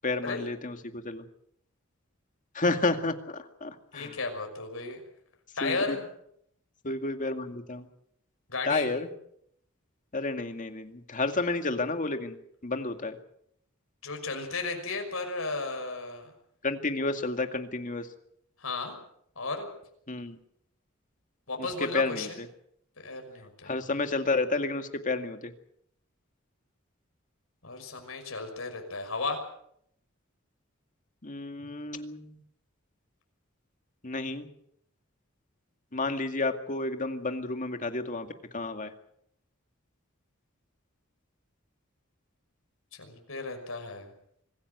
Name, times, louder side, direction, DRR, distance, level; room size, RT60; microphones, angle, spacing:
voice 1, 0.0-1.2 2.5-4.2 5.6-6.0 6.8-7.9 8.6-9.1 10.1-12.4 12.6-13.2 16.6-18.1 20.1-20.4 21.6-22.5 23.6-25.5 31.2-32.4 34.0-34.5 35.9-38.3 38.5-38.9, left 3 dB, 40° left, 7 dB, 2.2 m, -31 dB
voice 2, 3.9-5.0 5.6-6.1 8.5-8.9 14.0-16.3 18.6-18.9 19.4-19.7 21.5-22.4 23.0-23.7 27.6-29.4 43.0-44.1, left 3 dB, 80° left, 4 dB, 5.9 m, -34 dB
25.0 x 16.0 x 8.1 m, 0.71 s
head